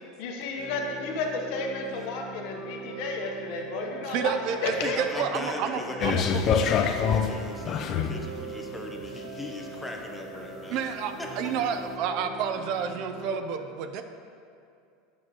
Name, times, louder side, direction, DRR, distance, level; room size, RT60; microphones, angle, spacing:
voice 1, 0.2-4.3 4.6-5.0, left 4 dB, 65° left, 1 dB, 0.9 m, -32 dB
sound 1, 0.6-13.4, right 3 dB, 85° right, 1.6 m, -41 dB
voice 2, 4.1-6.4 10.7-14.0, right 7 dB, 55° right, 8 dB, 0.4 m, -30 dB
voice 3, 4.8-10.8 11.2-11.6, left 2 dB, 5° left, 0 dB, 0.7 m, -39 dB
sound 2, 6.0-8.3 9.0-9.1, left 7 dB, 40° left, 0.4 m, -25 dB
7.4 x 6.1 x 2.9 m, 2.4 s
supercardioid pair, 135°, 0 cm